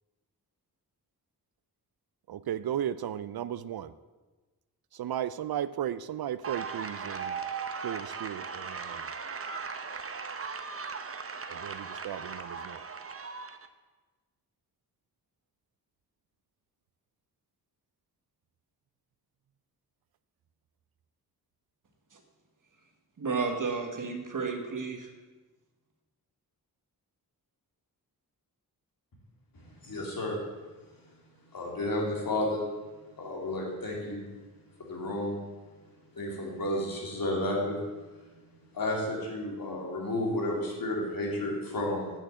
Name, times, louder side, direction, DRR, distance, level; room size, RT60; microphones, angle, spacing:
voice 1, 2.3-3.9 4.9-7.4 7.8-9.1 11.5-12.8, right 10 dB, 70° right, 14 dB, 0.5 m, -35 dB
sound 1, 6.4-13.7, right 5 dB, 35° right, 0.7 m, -38 dB
voice 2, 23.2-25.1, right 4 dB, 50° right, 4 dB, 1.4 m, -32 dB
voice 3, 29.8-30.4 31.5-32.6 33.2-34.2 34.8-35.4 36.2-37.8 38.7-42.1, left 1 dB, 60° left, -2 dB, 2.9 m, -31 dB
8.6 x 6.4 x 7.5 m, 1.2 s
wide cardioid pair, 100°, 39 cm